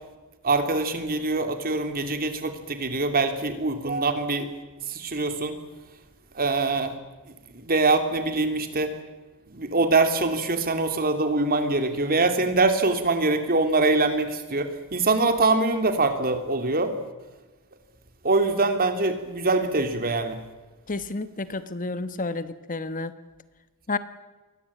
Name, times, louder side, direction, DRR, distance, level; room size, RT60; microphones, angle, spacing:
voice 1, 0.4-4.6 4.9-5.5 6.3-6.9 7.5-8.9 9.5-16.9 18.2-20.4, right 3 dB, 40° right, 7 dB, 3.0 m, -24 dB
voice 2, 20.9-23.1 23.9-24.0, left 3 dB, 35° left, 12 dB, 1.2 m, -30 dB
29.0 x 23.0 x 8.7 m, 1.2 s
head